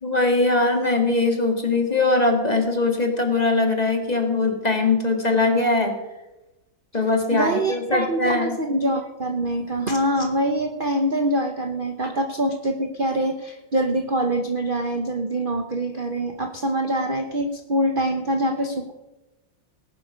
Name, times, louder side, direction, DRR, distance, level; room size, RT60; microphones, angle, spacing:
voice 1, 0.0-5.9 6.9-8.6 12.0-12.1, left 3 dB, 20° left, 3 dB, 1.9 m, -21 dB
voice 2, 7.3-18.9, right 1 dB, 35° right, 4 dB, 1.0 m, -24 dB
18.5 x 11.5 x 5.1 m, 1.0 s
omnidirectional pair, 2.0 m